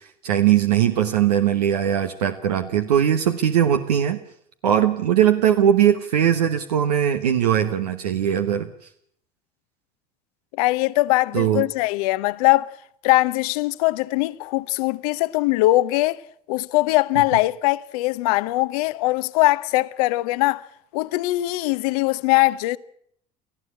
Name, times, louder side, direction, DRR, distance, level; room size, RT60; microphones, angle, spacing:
voice 1, 0.0-4.2 4.6-8.7 11.3-11.7, right 10 dB, 85° right, 1.1 m, -20 dB
voice 2, 10.6-12.7 13.0-16.2 16.5-20.6 20.9-22.8, left 19 dB, 75° left, 0.8 m, -21 dB
18.5 x 14.5 x 9.8 m
hypercardioid pair, 70°, 20 cm